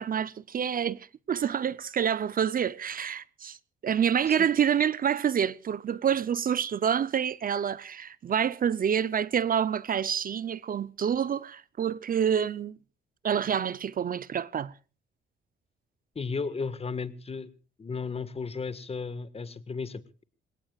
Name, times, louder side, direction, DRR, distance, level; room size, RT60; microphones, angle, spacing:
voice 1, 0.0-3.6 3.8-12.7 13.2-14.7, right 8 dB, 45° right, 0.7 m, -27 dB
voice 2, 16.1-17.5 17.8-20.2, left 4 dB, 30° left, 1.7 m, -34 dB
28.0 x 17.5 x 2.4 m
cardioid pair, 90°, 20 cm